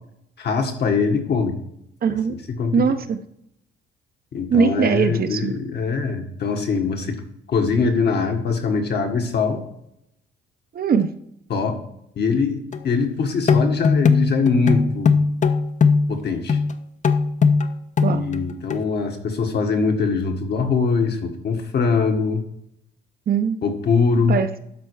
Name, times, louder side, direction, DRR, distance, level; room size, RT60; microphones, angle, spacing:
voice 1, 0.4-1.6 2.1-2.2 2.6-2.8 4.3-7.2 7.5-9.6 11.5-11.8 12.2-15.2 16.1-16.6 18.1-22.5 23.6-24.4, left 4 dB, 55° left, 4 dB, 1.7 m, -22 dB
voice 2, 2.0-2.4 2.7-3.2 4.5-5.5 10.7-11.1 18.0-18.3 23.3-23.6 24.3-24.6, right 6 dB, 50° right, 9 dB, 0.8 m, -20 dB
sound 1, 12.7-12.8 13.5-16.2 16.5-16.8 17.0-18.4 18.7-18.8, left 5 dB, 40° left, 0.7 m, -19 dB
12.0 x 4.4 x 4.8 m, 0.76 s
cardioid pair, 90°, 20 cm